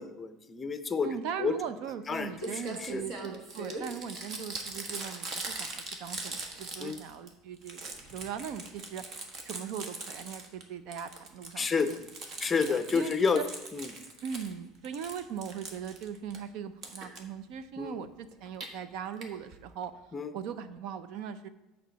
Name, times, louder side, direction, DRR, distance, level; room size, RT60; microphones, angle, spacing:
voice 1, 0.0-1.1 1.4-1.5 2.1-3.0 6.8-7.0 11.6-12.0 12.4-13.4 13.7-13.9 17.8-17.9 20.1-20.3, left 5 dB, 20° left, 10 dB, 0.6 m, -30 dB
voice 2, 1.0-9.0 9.4-12.0 12.4-13.4 14.2-19.9 20.3-21.5, right 7 dB, 65° right, 12 dB, 0.6 m, -39 dB
Crumpling crinkling, 2.1-2.2 2.4-7.3 7.6-10.6 10.9-14.5 14.8-16.4 16.8-17.2 18.3-18.7 19.2-19.3 19.5-19.6 19.8-19.9, right 3 dB, 45° right, 1.3 m, -41 dB
6.7 x 4.5 x 6.4 m, 0.97 s
supercardioid pair, 130°, 0 cm